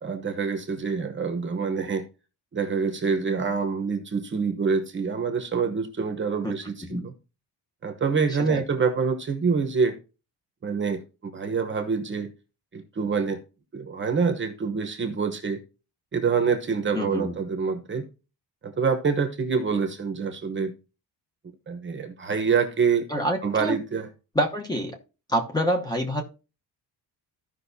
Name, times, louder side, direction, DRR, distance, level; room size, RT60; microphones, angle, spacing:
voice 1, 0.0-2.1 2.5-7.1 7.8-10.0 10.6-12.3 12.7-13.4 13.7-15.6 16.1-18.1 18.6-20.7 21.7-23.1 23.4-24.1, right 5 dB, 30° right, 1.0 m, -26 dB
voice 2, 16.9-17.3 23.1-23.8 24.3-25.0 25.3-26.2, equal, 10° left, 1.0 m, -27 dB
14.5 x 5.5 x 2.7 m
cardioid pair, 175°, 39 cm